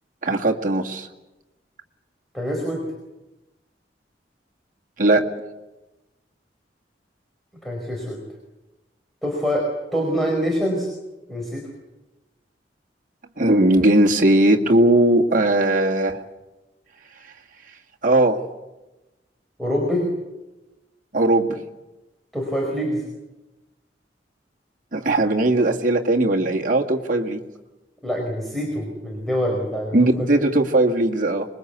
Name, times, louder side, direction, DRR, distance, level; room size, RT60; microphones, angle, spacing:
voice 1, 0.2-1.1 5.0-5.2 13.4-16.2 18.0-18.4 21.1-21.6 24.9-27.4 29.9-31.5, right 1 dB, 45° right, 0 dB, 2.1 m, -18 dB
voice 2, 2.3-2.9 7.6-8.2 9.2-10.9 11.3-11.7 19.6-20.1 22.3-23.0 28.0-30.5, equal, ahead, -1 dB, 4.5 m, -25 dB
26.0 x 21.5 x 8.2 m, 1.1 s
head